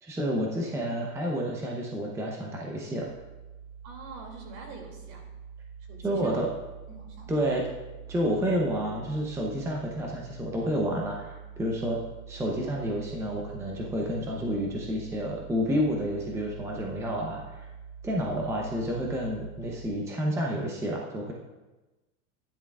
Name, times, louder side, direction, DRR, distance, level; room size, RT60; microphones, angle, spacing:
voice 1, 0.0-3.1 6.0-6.5 7.3-7.7 8.1-12.0 12.3-17.7 18.0-21.3, equal, 5° right, -1 dB, 0.7 m, -30 dB
sound 1, 3.0-19.9, right 7 dB, 10° left, 3.2 m, -45 dB
voice 2, 3.8-5.2 5.9-6.4 6.9-7.4, right 3 dB, 60° right, 1 dB, 2.7 m, -45 dB
12.5 x 10.0 x 2.4 m, 1.1 s
supercardioid pair, 145°, 45 cm